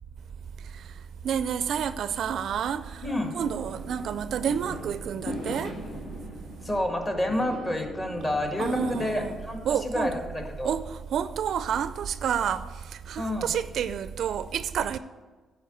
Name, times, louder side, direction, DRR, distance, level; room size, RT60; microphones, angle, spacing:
voice 1, 1.2-3.1 3.3-5.7 8.6-9.4 9.6-10.2 10.6-12.6 13.1-15.0, right 8 dB, 65° right, 0.4 m, -29 dB
voice 2, 3.0-3.4 6.6-10.7 13.2-13.5, left 1 dB, 25° left, 1.8 m, -29 dB
Fireworks, 3.2-9.5, left 1 dB, 60° left, 2.4 m, -39 dB
10.0 x 4.9 x 7.7 m
cardioid pair, 90°, 0 cm